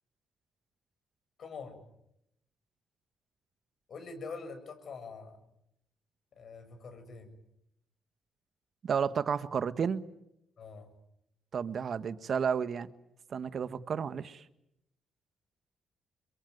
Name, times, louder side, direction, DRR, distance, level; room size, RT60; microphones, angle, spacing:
voice 1, 1.4-1.8 3.9-5.4 6.4-7.3 10.6-10.9, left 4 dB, 60° left, 8 dB, 7.2 m, -44 dB
voice 2, 8.8-10.0 11.5-12.9 13.3-14.4, right 7 dB, 55° right, 13 dB, 1.5 m, -32 dB
25.0 x 23.5 x 9.5 m, 0.81 s
supercardioid pair, 65°, 0 cm